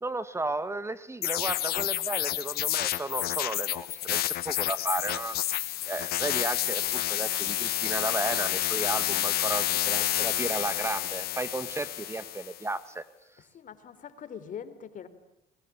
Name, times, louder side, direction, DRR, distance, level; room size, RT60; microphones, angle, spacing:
voice 1, 0.0-5.3 5.9-13.0, right 2 dB, 15° right, 13 dB, 1.5 m, -34 dB
sound 1, 1.2-12.6, left 13 dB, 65° left, 1.2 m, -29 dB
voice 2, 13.5-15.1, left 8 dB, 50° left, 12 dB, 4.0 m, -43 dB
30.0 x 22.5 x 8.6 m, 0.93 s
cardioid pair, 110°, 17 cm